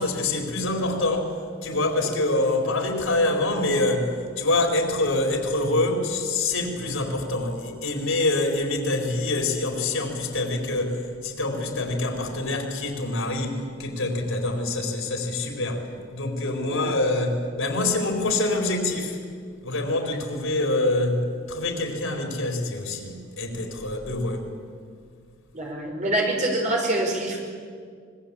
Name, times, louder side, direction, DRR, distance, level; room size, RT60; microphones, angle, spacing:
voice 1, 0.0-19.2 19.6-24.5, left 2 dB, 85° left, 3 dB, 4.4 m, -25 dB
voice 2, 25.5-27.4, right 1 dB, 35° right, 0 dB, 5.3 m, -25 dB
25.5 x 20.5 x 8.6 m, 2.1 s
head